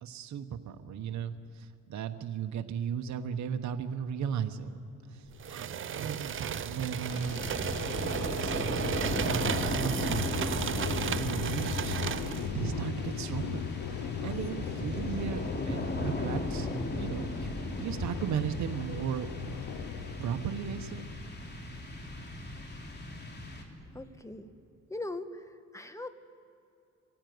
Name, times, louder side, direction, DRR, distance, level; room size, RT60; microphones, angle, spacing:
voice 1, 0.0-4.7 5.1-7.4 7.8-12.1 12.5-16.7 17.0-17.5 17.8-19.3 20.2-21.0, right 8 dB, 65° right, 7 dB, 1.2 m, -36 dB
sound 1, 5.0-21.3, left 8 dB, 85° left, 0.9 m, -39 dB
sound 2, 5.4-12.5, right 9 dB, 40° right, 0.7 m, -34 dB
sound 3, 7.1-24.0, left 2 dB, 35° left, 3.2 m, -37 dB
voice 2, 23.9-24.5 24.9-26.1, left 2 dB, 10° left, 10 dB, 1.4 m, -40 dB
24.5 x 15.5 x 9.5 m, 2.5 s
cardioid pair, 90°, 30 cm